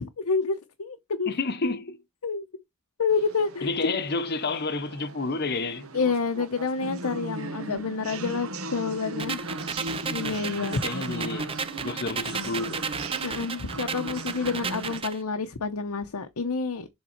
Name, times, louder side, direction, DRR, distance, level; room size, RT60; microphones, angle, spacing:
voice 1, 0.0-1.3 2.2-2.5 3.0-4.0 5.9-9.4 10.1-10.8 13.2-16.9, left 4 dB, 90° left, 0.8 m, -28 dB
voice 2, 1.3-2.0 3.6-5.9 10.2-11.5 11.8-12.8, left 3 dB, 45° left, 0.8 m, -30 dB
sound 1, 3.1-15.0, right 2 dB, 70° right, 1.0 m, -37 dB
sound 2, 9.2-15.2, right 5 dB, 25° right, 0.5 m, -34 dB
7.2 x 3.7 x 4.4 m
head